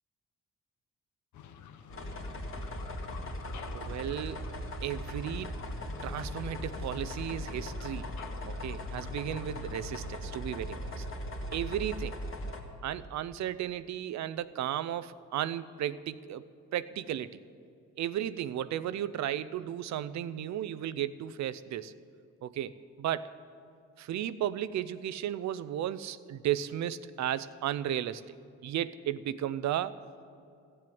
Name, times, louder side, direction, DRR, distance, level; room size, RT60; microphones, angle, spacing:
sound 1, 1.3-10.1, left 7 dB, 70° left, 0.9 m, -49 dB
sound 2, 1.9-12.6, left 1 dB, 45° left, 2.1 m, -39 dB
voice 1, 3.7-4.4 4.8-5.5 6.0-8.1 8.4-11.1 11.5-12.2 12.8-16.4 16.7-17.4 18.0-21.9 22.4-23.3 24.0-28.3 28.6-30.0, right 11 dB, 65° right, 16 dB, 0.6 m, -34 dB
15.0 x 7.7 x 9.4 m, 2.4 s
cardioid pair, 90°, 30 cm